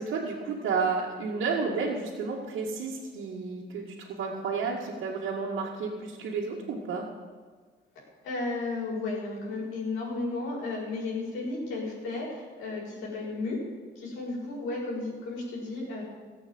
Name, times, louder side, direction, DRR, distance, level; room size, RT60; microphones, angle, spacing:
voice 1, 0.0-7.1, right 4 dB, 80° right, -6 dB, 2.2 m, -31 dB
voice 2, 8.2-13.6 14.0-16.0, left 3 dB, 90° left, -4 dB, 5.2 m, -33 dB
15.0 x 8.2 x 7.9 m, 1.5 s
cardioid pair, 90°, 20 cm